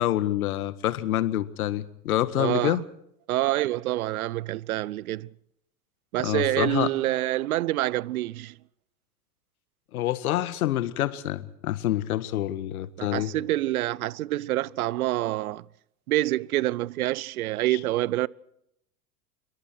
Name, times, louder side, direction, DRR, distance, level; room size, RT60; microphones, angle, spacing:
voice 1, 0.0-2.8 6.2-6.9 9.9-13.3 17.7-17.8, left 13 dB, 70° left, 1.7 m, -27 dB
voice 2, 2.3-2.8 3.3-5.3 6.1-8.6 13.0-15.6 16.1-18.3, right 16 dB, 70° right, 0.8 m, -27 dB
27.0 x 23.5 x 4.6 m
hypercardioid pair, 85°, 45 cm